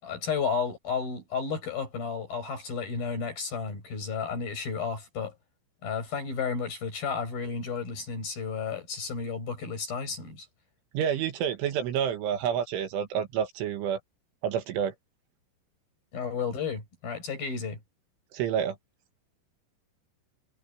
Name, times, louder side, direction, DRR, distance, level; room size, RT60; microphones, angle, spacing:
voice 1, 0.0-5.4 5.8-10.5 16.1-17.8, left 5 dB, 45° left, 8.7 m, -32 dB
voice 2, 10.9-14.0 14.4-14.9 18.3-18.8, right 8 dB, 75° right, 3.9 m, -28 dB
omnidirectional pair, 5.9 m